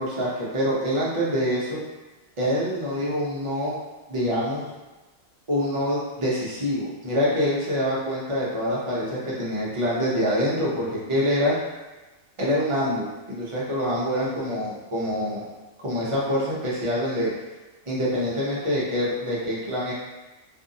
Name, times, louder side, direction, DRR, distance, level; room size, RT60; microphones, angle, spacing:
voice 1, 0.0-1.8 2.4-3.8 4.1-4.6 5.5-11.5 12.4-15.5 15.8-17.3 17.9-19.9, equal, 35° right, -6 dB, 0.5 m, -25 dB
2.6 x 2.4 x 2.6 m, 1.1 s
omnidirectional pair, 1.4 m